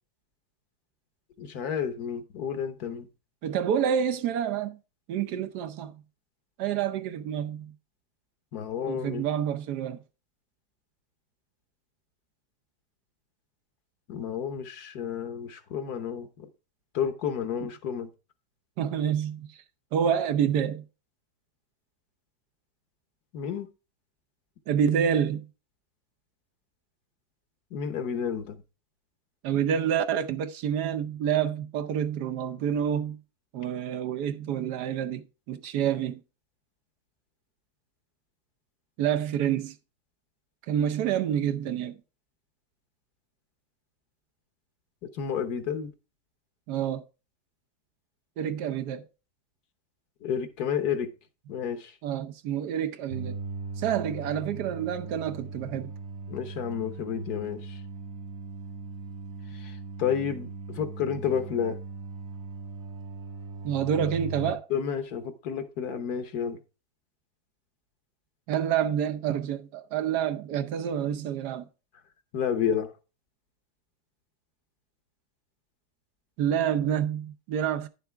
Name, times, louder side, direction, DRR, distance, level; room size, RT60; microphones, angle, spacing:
voice 1, 1.4-3.1 8.5-9.3 14.1-16.5 16.9-18.1 23.3-23.7 27.7-28.6 45.0-45.9 50.2-51.1 51.5-51.9 56.3-57.8 59.5-61.8 64.7-66.6 72.3-72.9, left 8 dB, 75° left, 1.5 m, -31 dB
voice 2, 3.4-4.8 5.1-5.9 6.6-7.7 8.9-10.0 18.8-19.5 19.9-20.8 24.7-25.4 29.4-33.2 33.5-36.2 39.0-39.7 40.7-41.9 46.7-47.0 48.4-49.0 52.0-53.3 53.8-55.9 63.6-64.7 68.5-71.6 76.4-77.9, right 9 dB, 90° right, 1.3 m, -28 dB
sound 1, 53.1-64.5, right 4 dB, 55° right, 0.9 m, -39 dB
10.0 x 7.0 x 3.4 m
omnidirectional pair, 1.7 m